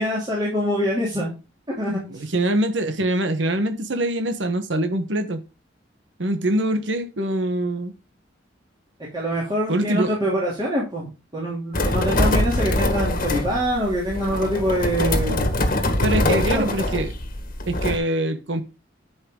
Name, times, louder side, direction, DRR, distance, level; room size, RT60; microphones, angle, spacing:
voice 1, 0.0-1.3 1.8-2.3 9.1-15.4 16.1-16.7, equal, 25° right, 3.0 m, -24 dB
voice 2, 2.1-5.4 6.2-7.9 9.7-10.1 16.0-17.1 17.7-18.6, right 1 dB, 75° right, 1.3 m, -24 dB
sound 1, 11.7-18.0, left 1 dB, 50° left, 1.7 m, -23 dB
11.5 x 5.5 x 3.9 m
head